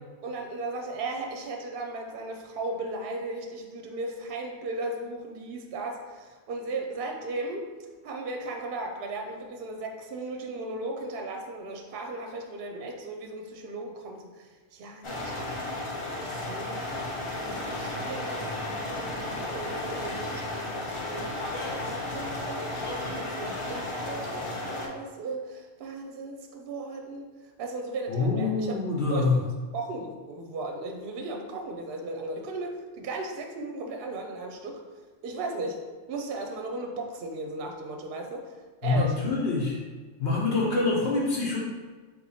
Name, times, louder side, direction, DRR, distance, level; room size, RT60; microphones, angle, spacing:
voice 1, 0.2-7.7 8.0-15.8 16.2-17.0 17.4-27.3 27.6-28.7 29.1-29.5 29.7-34.8 35.2-35.8 36.1-38.5 38.8-39.2, right 2 dB, 60° right, 3 dB, 0.7 m, -36 dB
sound 1, 15.0-24.9, left 2 dB, 40° left, 0.4 m, -33 dB
voice 2, 28.1-29.4 38.8-39.8 40.2-41.6, left 3 dB, 65° left, -4 dB, 1.1 m, -25 dB
3.9 x 2.9 x 4.1 m, 1.4 s
omnidirectional pair, 1.2 m